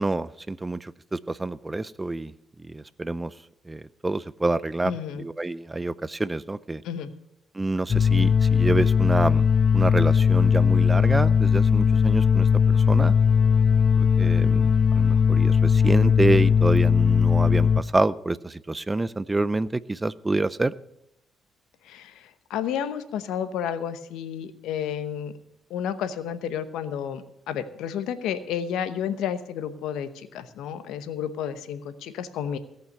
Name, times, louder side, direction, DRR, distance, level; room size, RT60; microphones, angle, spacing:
voice 1, 0.0-2.3 2.6-3.3 3.7-4.9 5.2-6.8 7.5-9.5 9.7-13.1 14.0-20.7, right 2 dB, 20° right, 18 dB, 0.5 m, -27 dB
voice 2, 4.8-5.3 6.8-7.1 21.8-25.3 25.7-32.6, left 8 dB, 90° left, 12 dB, 0.9 m, -31 dB
sound 1, 7.9-17.8, left 6 dB, 40° left, 0.6 m, -19 dB
17.0 x 5.7 x 7.8 m, 0.81 s
cardioid pair, 90°, 0 cm